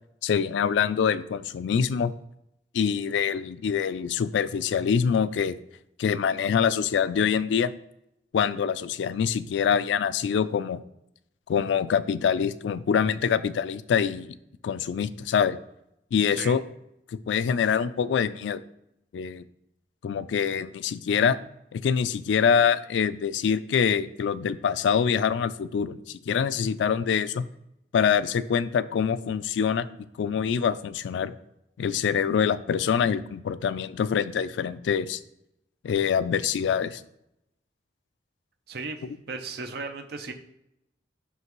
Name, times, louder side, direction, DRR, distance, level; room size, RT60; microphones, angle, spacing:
voice 1, 0.2-2.1 2.7-5.6 6.0-7.7 8.3-10.8 11.5-14.3 14.6-15.6 16.1-16.6 17.1-18.6 19.1-19.4 20.0-21.4 21.7-27.4 27.9-29.9 30.2-31.3 31.8-35.2 35.8-37.0, left 7 dB, 90° left, 15 dB, 0.3 m, -25 dB
voice 2, 38.7-40.3, right 4 dB, 60° right, 6 dB, 0.6 m, -36 dB
5.8 x 5.5 x 3.1 m, 0.83 s
head